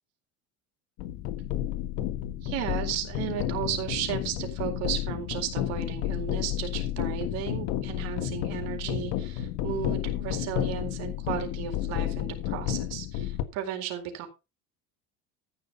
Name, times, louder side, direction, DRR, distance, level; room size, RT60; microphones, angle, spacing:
sound 1, 1.0-13.4, left 12 dB, 70° left, 1.6 m, -31 dB
voice 1, 2.4-14.3, right 10 dB, 60° right, 4 dB, 4.2 m, -34 dB
15.0 x 5.9 x 5.4 m, 0.28 s
cardioid pair, 160°, 30 cm